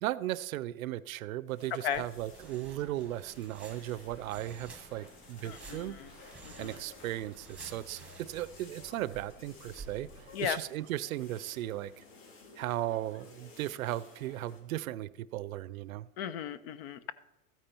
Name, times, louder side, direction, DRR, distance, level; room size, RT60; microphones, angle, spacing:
voice 1, 0.0-6.0 6.6-10.1 10.4-12.0 12.6-16.1, right 14 dB, 70° right, 0.6 m, -36 dB
sound 1, 1.5-14.6, left 3 dB, 60° left, 3.5 m, -55 dB
sound 2, 1.9-10.5, right 3 dB, 5° right, 1.3 m, -52 dB
voice 2, 5.4-6.1 6.4-6.7 10.3-10.6 16.2-17.1, left 9 dB, 45° left, 0.6 m, -35 dB
13.5 x 9.0 x 4.4 m
supercardioid pair, 160°, 42 cm